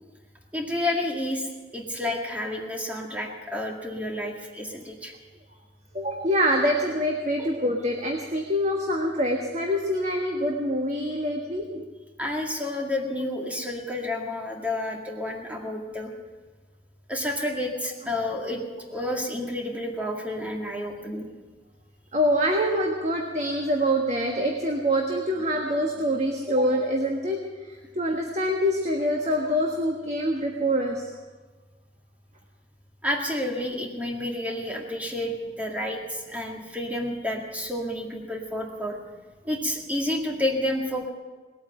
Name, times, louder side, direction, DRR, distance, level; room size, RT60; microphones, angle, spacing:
voice 1, 0.5-5.1 7.4-7.5 12.2-16.1 17.1-18.6 18.9-21.3 33.0-39.0 39.5-41.1, left 1 dB, 10° right, 0 dB, 2.0 m, -30 dB
voice 2, 5.9-11.9 22.1-31.1, equal, 40° right, 1 dB, 1.4 m, -25 dB
19.5 x 8.8 x 7.8 m, 1.3 s
head